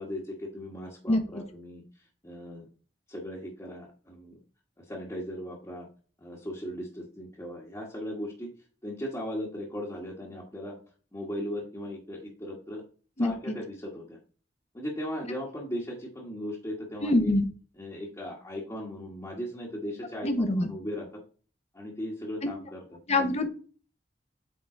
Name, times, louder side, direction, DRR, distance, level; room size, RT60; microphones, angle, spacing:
voice 1, 0.0-1.8 2.2-2.7 3.1-4.4 4.8-5.9 6.2-8.5 8.8-10.8 11.1-12.8 13.2-14.2 14.7-17.3 17.8-21.1 21.7-23.0, equal, 20° left, -4 dB, 1.3 m, -37 dB
voice 2, 13.2-13.5 17.0-17.4 20.2-20.7 23.1-23.5, left 1 dB, 40° left, 7 dB, 0.9 m, -25 dB
8.6 x 3.8 x 3.8 m, 0.39 s
head